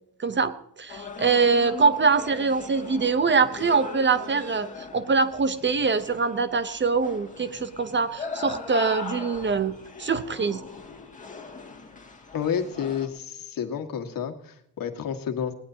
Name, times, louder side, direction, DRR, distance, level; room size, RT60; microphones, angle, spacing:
voice 1, 0.2-4.7 4.9-10.6, right 4 dB, 30° right, 12 dB, 0.9 m, -23 dB
sound 1, 0.9-13.1, left 3 dB, 20° left, 2.3 m, -40 dB
voice 2, 12.3-15.5, left 8 dB, 55° left, 5 dB, 1.9 m, -30 dB
20.5 x 18.0 x 2.9 m, 0.72 s
cardioid pair, 130°, 40 cm